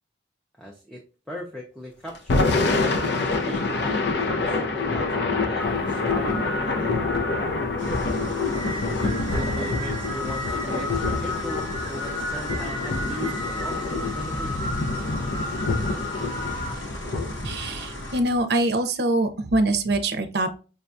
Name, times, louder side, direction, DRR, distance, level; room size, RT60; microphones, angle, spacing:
voice 1, 0.6-7.0 8.7-14.7, equal, ahead, -2 dB, 0.5 m, -38 dB
Thunder / Rain, 2.2-18.4, left 3 dB, 60° left, 0.5 m, -27 dB
sound 1, 5.6-16.7, left 1 dB, 25° left, 0.9 m, -34 dB
sound 2, 7.8-18.2, left 1 dB, 90° left, 1.0 m, -37 dB
voice 2, 17.4-20.6, right 2 dB, 55° right, 6 dB, 0.6 m, -24 dB
5.2 x 2.2 x 2.6 m, 0.34 s
head